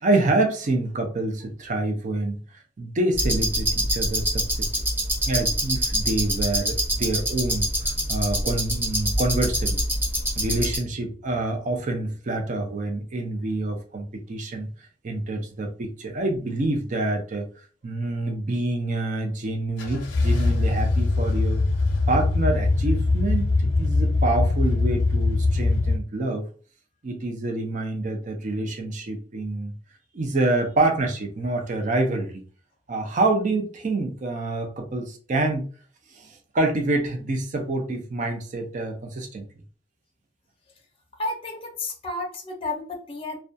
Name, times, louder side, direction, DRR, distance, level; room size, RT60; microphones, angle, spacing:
voice 1, 0.0-2.4 2.8-4.7 5.2-9.8 10.4-14.7 15.0-17.4 17.8-21.6 22.1-26.5 27.0-29.7 30.1-32.4 32.9-35.7 36.1-39.4, right 2 dB, 45° right, 3 dB, 0.5 m, -27 dB
sound 1, 3.1-10.8, equal, 10° right, 1.0 m, -25 dB
sound 2, 19.8-26.0, left 3 dB, 85° left, 0.6 m, -22 dB
voice 2, 41.1-43.4, left 2 dB, 30° left, 2 dB, 0.5 m, -32 dB
2.3 x 2.2 x 2.5 m, 0.40 s
head